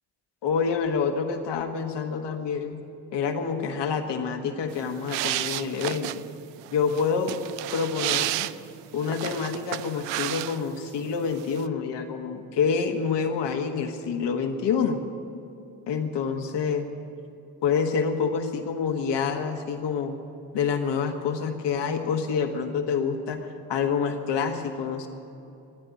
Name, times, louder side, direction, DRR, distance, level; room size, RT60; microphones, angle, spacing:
voice 1, 0.4-2.8 3.1-6.1 6.7-7.4 7.7-8.5 8.9-15.0 15.9-16.9 17.6-20.1 20.5-25.1, left 6 dB, 65° left, 5 dB, 1.6 m, -27 dB
sound 1, 4.7-10.9 11.2-11.7, right 15 dB, 70° right, 0.6 m, -32 dB
14.0 x 10.0 x 9.7 m, 2.7 s
hypercardioid pair, 45°, 45 cm